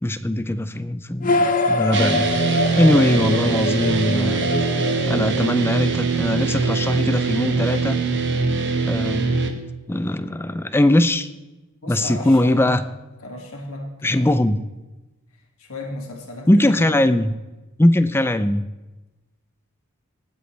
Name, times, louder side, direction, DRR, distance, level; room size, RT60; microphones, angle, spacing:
voice 1, 0.0-2.3 2.8-4.5 5.1-8.0 8.9-9.4 9.9-11.3 11.9-12.8 14.0-14.6 16.5-17.3 17.8-18.6, left 1 dB, 10° left, 12 dB, 0.4 m, -20 dB
sound 1, 1.2-6.0, left 2 dB, 40° left, 0.7 m, -24 dB
sound 2, 1.9-9.5, right 4 dB, 55° right, 1.1 m, -22 dB
voice 2, 11.8-12.8 13.2-14.4 15.6-17.0, left 1 dB, 65° left, 0 dB, 2.3 m, -34 dB
19.0 x 7.9 x 3.3 m, 1.1 s
head